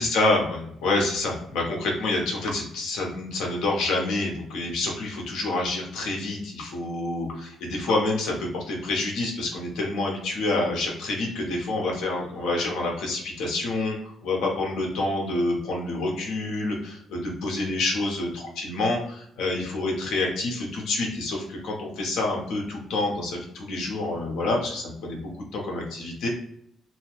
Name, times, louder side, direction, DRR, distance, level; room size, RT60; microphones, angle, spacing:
voice 1, 0.0-13.9 14.2-26.3, left 2 dB, 85° left, 0 dB, 0.9 m, -27 dB
2.9 x 2.0 x 2.9 m, 0.69 s
cardioid pair, 90°, 0 cm